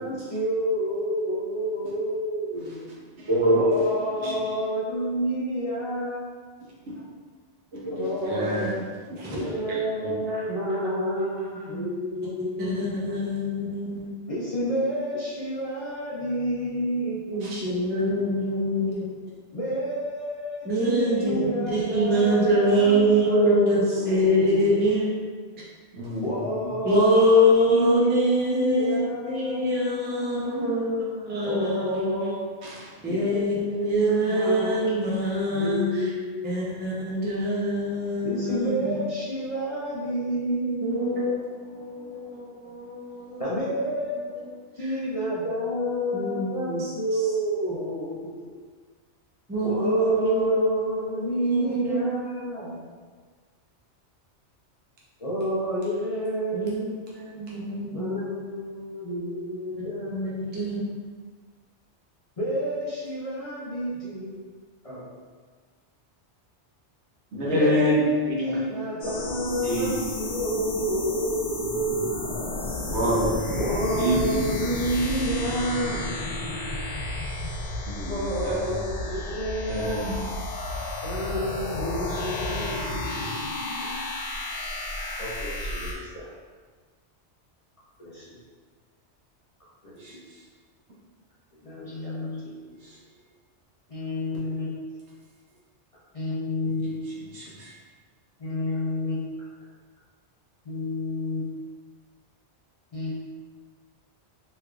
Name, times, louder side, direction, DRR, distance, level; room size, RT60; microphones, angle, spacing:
voice 1, 0.0-3.0 3.5-6.3 7.9-8.8 9.3-12.9 14.3-17.7 19.5-24.7 26.2-27.3 27.7-29.6 31.4-32.5 33.1-33.5 34.3-34.8 35.5-36.9 38.2-41.2 43.4-44.3 44.8-48.5 49.6-52.7 55.2-56.7 57.9-60.4 62.4-64.4 64.8-65.1 67.5-72.3 73.5-76.1 78.1-80.0 81.0-83.3 85.2-86.3 88.0-88.4 89.8-90.2 91.6-92.5 93.9-94.7 96.1-96.9 98.4-99.5 100.6-101.4 102.9-103.1, equal, 40° left, -9 dB, 0.5 m, -29 dB
voice 2, 3.2-3.8 4.2-4.3 7.7-8.7 9.1-9.2 10.0-10.1 17.4-17.5 25.9-26.3 32.6-32.9 67.3-67.9 68.3-68.7 69.6-69.9 72.9-73.6 74.0-74.4 78.0-78.2 78.4-78.8 79.7-80.2 83.8-84.0 90.0-90.1 97.3-97.7, equal, 70° right, -6 dB, 1.1 m, -26 dB
voice 3, 9.2-9.7 10.3-10.4 11.7-11.8 12.6-14.2 17.3-19.1 20.7-25.1 26.8-29.0 29.3-32.3 33.0-36.0 36.4-39.0 40.8-43.4 46.1-47.2 49.5-52.1 52.6-52.7 56.5-58.2 60.1-61.0, equal, 15° right, -6 dB, 0.4 m, -25 dB
sound 1, 69.0-85.9, left 2 dB, 85° left, 1.1 m, -32 dB
3.4 x 3.1 x 2.3 m, 1.5 s
omnidirectional pair, 1.2 m